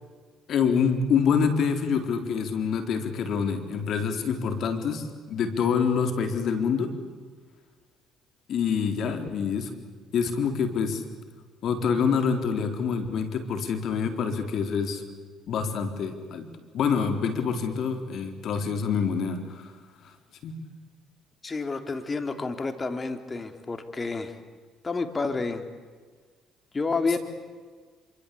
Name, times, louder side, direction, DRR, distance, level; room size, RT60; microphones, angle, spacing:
voice 1, 0.5-6.9 8.5-9.7 10.1-11.0 11.6-15.0 15.5-16.5 16.7-19.7 20.4-20.6, left 6 dB, 60° left, 7 dB, 3.8 m, -26 dB
voice 2, 21.4-24.3 24.8-25.6 26.7-27.2, left 3 dB, 30° left, 8 dB, 3.2 m, -29 dB
26.5 x 25.0 x 8.5 m, 1.5 s
supercardioid pair, 70°, 0 cm